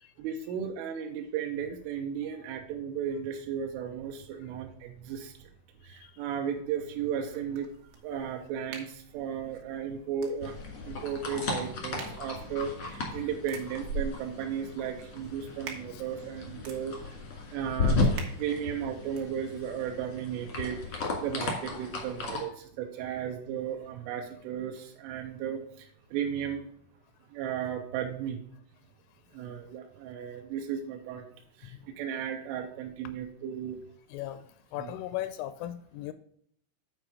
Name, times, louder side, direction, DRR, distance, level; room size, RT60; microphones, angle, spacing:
voice 1, 0.2-5.3 5.8-7.7 8.0-10.5 10.9-17.0 17.5-18.0 18.4-22.5 22.8-25.6 26.1-26.7 27.3-28.4 29.3-31.3 31.6-33.8 34.8-35.0, right 8 dB, 85° right, 2 dB, 3.2 m, -35 dB
voice 2, 2.2-2.5 5.9-6.1 15.9-16.0 31.7-31.8 34.1-36.1, left 13 dB, 85° left, 11 dB, 2.9 m, -38 dB
sound 1, 7.5-19.3, right 4 dB, 70° right, 3.2 m, -46 dB
sound 2, 10.4-22.4, left 3 dB, 65° left, 1.5 m, -34 dB
8.9 x 4.7 x 4.7 m, 0.64 s
omnidirectional pair, 5.8 m